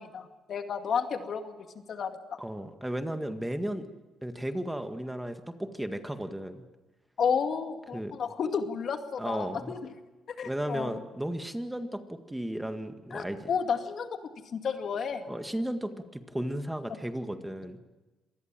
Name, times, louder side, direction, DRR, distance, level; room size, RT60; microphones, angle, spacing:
voice 1, 0.0-2.1 7.2-9.8 10.3-11.0 13.1-14.2 14.5-15.2, left 6 dB, 55° left, 6 dB, 2.2 m, -32 dB
voice 2, 2.4-3.9 4.2-6.6 7.9-8.2 9.2-9.7 10.4-13.5 15.3-17.8, right 1 dB, 5° right, 7 dB, 1.8 m, -34 dB
26.5 x 19.5 x 7.6 m, 1.1 s
cardioid pair, 90°, 0 cm